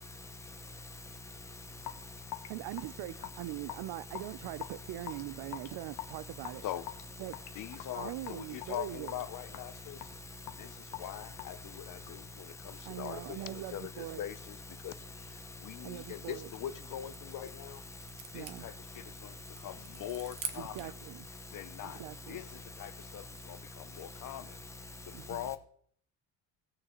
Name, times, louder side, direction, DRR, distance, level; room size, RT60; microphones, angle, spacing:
voice 1, 1.6-2.2 3.6-3.7 4.7-4.8 5.4-5.5 6.8-6.9 7.2-7.7 9.3-9.4 9.7-9.8 11.0-11.1 11.7-11.8 13.2-13.4 15.1-15.5 16.0-16.1 17.8-17.9 18.6-19.0 20.9-21.0 21.3-21.4 22.4-22.5 24.3-24.4 24.6-25.1 25.5-25.6, left 2 dB, 5° left, 0.6 m, -48 dB
Raindrop / Drip, 1.8-12.3, left 14 dB, 65° left, 0.9 m, -47 dB
voice 2, 2.5-6.6 7.2-7.4 7.9-9.2 12.9-14.2 15.8-16.5 18.3-18.7 20.5-21.3 21.8-22.4 25.1-25.5, right 15 dB, 65° right, 0.5 m, -42 dB
voice 3, 7.5-10.1 10.6-17.8 18.3-20.9 21.5-24.6 25.1-25.6, left 12 dB, 45° left, 0.5 m, -43 dB
sound 1, 16.5-21.0, right 7 dB, 45° right, 0.9 m, -47 dB
17.0 x 6.4 x 3.0 m
cardioid pair, 165°, 43 cm